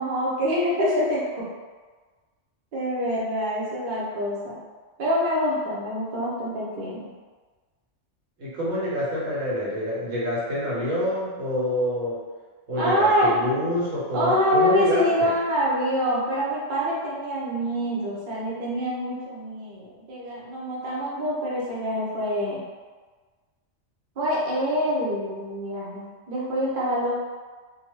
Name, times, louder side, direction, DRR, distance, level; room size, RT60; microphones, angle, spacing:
voice 1, 0.0-1.5 2.7-4.5 5.0-7.1 12.8-13.4 14.1-22.6 24.2-27.1, equal, 50° right, -6 dB, 0.7 m, -25 dB
voice 2, 8.4-12.2 12.7-15.3, equal, 85° right, -8 dB, 1.3 m, -27 dB
2.5 x 2.3 x 3.0 m, 1.4 s
omnidirectional pair, 1.3 m